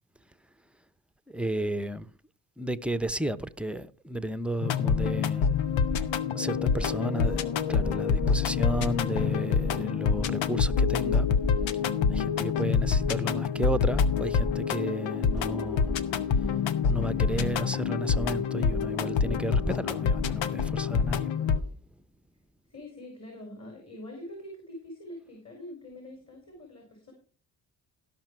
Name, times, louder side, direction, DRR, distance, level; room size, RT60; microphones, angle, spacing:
voice 1, 1.3-2.1 2.6-5.5 6.3-11.3 12.1-15.9 16.9-21.3, right 1 dB, ahead, 0.9 m, -33 dB
sound 1, 4.6-21.6, left 6 dB, 75° left, 0.9 m, -26 dB
voice 2, 6.8-7.5 22.7-27.1, left 1 dB, 35° left, 4.6 m, -44 dB
sound 2, 15.4-20.4, left 4 dB, 60° left, 7.5 m, -51 dB
17.0 x 5.9 x 4.7 m
hypercardioid pair, 45°, 47 cm